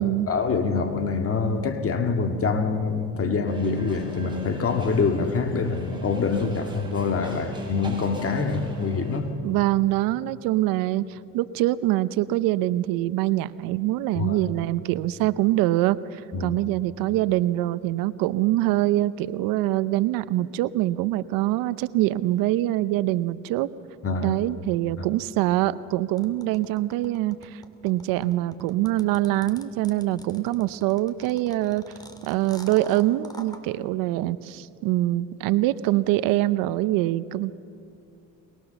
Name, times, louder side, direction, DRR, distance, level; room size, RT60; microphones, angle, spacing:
voice 1, 0.3-9.3 14.1-14.4 16.3-16.6 24.0-24.4 25.0-25.1, left 4 dB, 40° left, 2.2 m, -25 dB
sound 1, 3.4-9.2, right 2 dB, 15° right, 5.7 m, -40 dB
voice 2, 9.4-23.7 24.2-31.8 32.2-37.5, right 15 dB, 85° right, 0.7 m, -24 dB
sound 2, 26.2-33.6, left 1 dB, 10° left, 2.7 m, -45 dB
23.0 x 22.5 x 7.0 m
cardioid pair, 90°, 33 cm